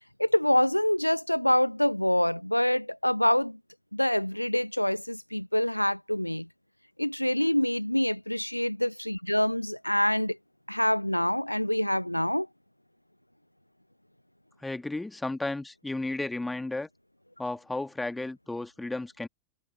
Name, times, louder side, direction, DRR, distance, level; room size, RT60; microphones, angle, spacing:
voice 1, 0.2-3.6 3.9-6.5 7.0-10.4 10.7-12.5, left 1 dB, 90° left, 1.0 m, -26 dB
voice 2, 14.6-16.9 17.4-19.3, left 2 dB, 5° left, 1.9 m, -33 dB
figure-of-eight pair, 90°, 0 cm